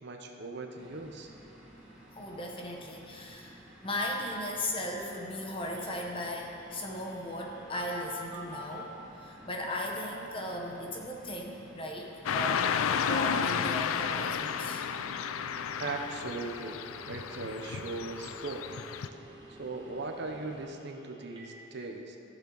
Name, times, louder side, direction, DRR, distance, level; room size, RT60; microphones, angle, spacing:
voice 1, 0.0-1.3 15.8-18.7 19.5-22.2, right 3 dB, 55° right, 3 dB, 0.8 m, -39 dB
sound 1, 0.7-20.7, right 1 dB, 5° right, 1.6 m, -54 dB
voice 2, 2.1-8.9 9.2-12.7 13.0-15.1, left 1 dB, 25° left, 0 dB, 1.0 m, -37 dB
Telephone, 5.8-8.9 13.3-21.5, equal, 25° right, 1.7 m, -51 dB
Car passing by / Traffic noise roadway noise, 12.3-19.1, left 7 dB, 85° left, 0.4 m, -32 dB
15.0 x 7.0 x 4.0 m, 2.9 s
head